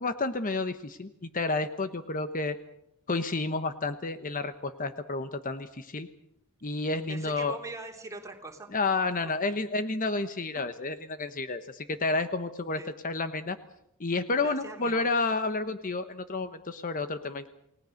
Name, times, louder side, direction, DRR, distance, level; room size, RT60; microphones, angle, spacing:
voice 1, 0.0-2.6 3.1-6.1 6.6-7.6 8.7-13.6 14.0-17.5, left 3 dB, 40° left, 10 dB, 1.1 m, -30 dB
voice 2, 7.1-8.7 10.5-10.6 12.8-12.9 14.4-15.0, right 2 dB, 15° right, 3 dB, 3.3 m, -42 dB
28.5 x 18.5 x 6.5 m, 0.77 s
head